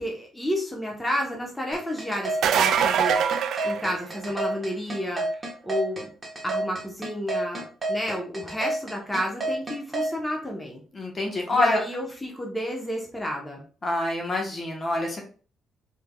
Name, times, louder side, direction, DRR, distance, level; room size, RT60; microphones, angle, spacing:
voice 1, 0.0-3.2 3.6-6.1 6.4-10.8 11.5-13.6, equal, 5° left, -1 dB, 0.9 m, -31 dB
sound 1, 1.7-10.1, right 2 dB, 20° right, 1.3 m, -29 dB
sound 2, 2.3-4.5 10.0-10.1 11.9-12.0, right 8 dB, 75° right, 0.3 m, -23 dB
voice 2, 10.9-11.8 13.8-15.2, left 2 dB, 35° left, 1 dB, 1.0 m, -26 dB
3.4 x 3.4 x 2.3 m, 0.40 s
cardioid pair, 90°, 0 cm